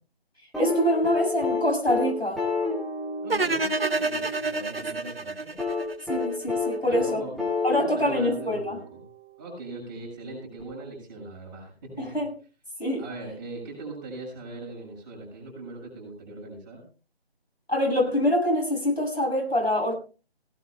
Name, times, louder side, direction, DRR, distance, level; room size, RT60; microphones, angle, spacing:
sound 1, 0.5-4.6 5.6-9.2 10.6-10.7, left 3 dB, ahead, 1.4 m, -30 dB
voice 1, 0.6-2.4 6.1-7.2 7.6-8.8 12.0-12.3 12.8-13.1 17.7-19.9, left 1 dB, 80° left, 0 dB, 7.2 m, -25 dB
voice 2, 3.2-5.5 6.8-9.0 9.4-12.2 13.0-16.8, right 2 dB, 20° right, -2 dB, 6.8 m, -40 dB
sound 2, 3.3-6.4, right 3 dB, 70° right, 1.3 m, -28 dB
19.0 x 17.5 x 2.3 m, 0.36 s
figure-of-eight pair, 150°, 31 cm